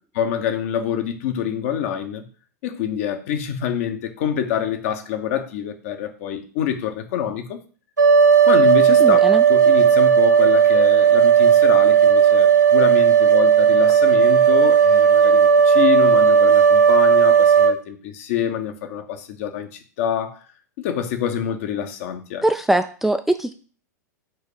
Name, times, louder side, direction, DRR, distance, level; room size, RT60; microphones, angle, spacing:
voice 1, 0.1-2.2 2.6-7.6 8.4-20.5 20.8-22.4, left 9 dB, 50° left, 0.9 m, -26 dB
sound 1, 8.0-17.7, right 7 dB, 85° right, 0.7 m, -14 dB
voice 2, 9.0-9.4 22.4-23.5, right 1 dB, 5° right, 0.3 m, -21 dB
4.6 x 4.4 x 4.9 m
figure-of-eight pair, 100°, 10 cm